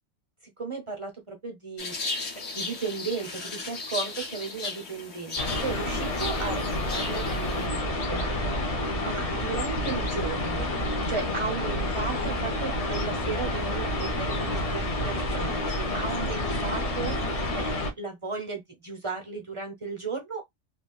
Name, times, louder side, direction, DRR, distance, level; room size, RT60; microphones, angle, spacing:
voice 1, 0.6-2.0 2.3-8.5 9.0-10.7 11.1-17.2 17.5-20.4, right 4 dB, 30° right, 0.8 m, -35 dB
sound 1, 1.8-7.7, left 3 dB, 65° left, 1.3 m, -36 dB
sound 2, 5.4-17.9, left 1 dB, 35° left, 0.6 m, -29 dB
3.4 x 2.5 x 2.2 m
omnidirectional pair, 1.2 m